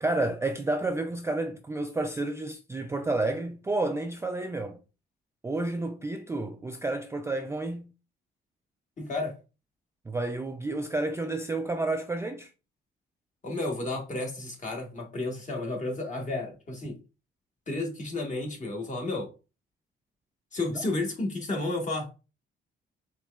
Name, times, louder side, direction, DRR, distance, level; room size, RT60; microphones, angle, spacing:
voice 1, 0.0-4.8 5.4-7.9 10.1-12.5 20.7-20.8, right 2 dB, 15° right, 0.3 m, -30 dB
voice 2, 9.0-9.3 13.4-17.0 17.7-19.3 20.5-22.1, left 2 dB, 35° left, 1.5 m, -32 dB
4.5 x 3.1 x 2.3 m
cardioid pair, 90°, 20 cm